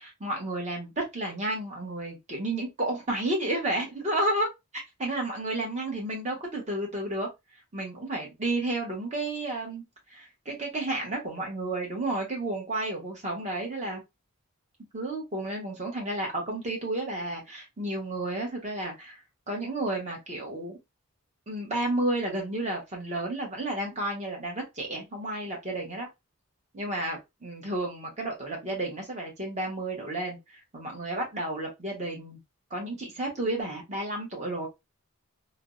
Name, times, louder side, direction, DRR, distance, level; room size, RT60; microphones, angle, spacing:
voice 1, 0.0-4.5 4.7-7.3 7.7-9.8 10.1-14.0 14.9-19.2 19.5-20.8 21.5-26.1 26.7-32.4 32.7-34.7, right 2 dB, 30° right, 0 dB, 0.9 m, -32 dB
3.3 x 2.0 x 2.3 m, 0.21 s
head